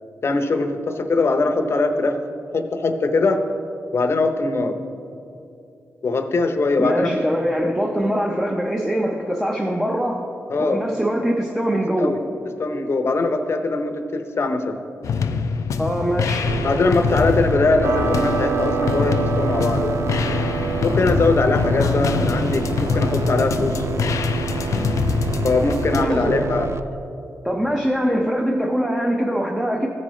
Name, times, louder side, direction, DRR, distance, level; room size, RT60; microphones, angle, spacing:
voice 1, 0.2-2.2 2.5-3.4 3.9-4.8 6.0-7.2 10.5-10.8 12.0-12.2 12.6-14.8 16.6-20.0 20.8-23.8 25.4-26.7, left 3 dB, 50° left, 7 dB, 0.8 m, -21 dB
voice 2, 6.8-10.3 10.6-12.1 15.8-16.5 26.0-26.4 27.4-29.9, equal, 5° right, 0 dB, 0.7 m, -22 dB
sound 1, 15.0-26.0, left 4 dB, 70° left, 0.4 m, -24 dB
sound 2, 16.5-26.8, right 6 dB, 55° right, 0.4 m, -29 dB
sound 3, 17.8-25.1, right 3 dB, 80° right, 0.9 m, -29 dB
14.5 x 4.9 x 3.1 m, 2.7 s
cardioid pair, 70°, 6 cm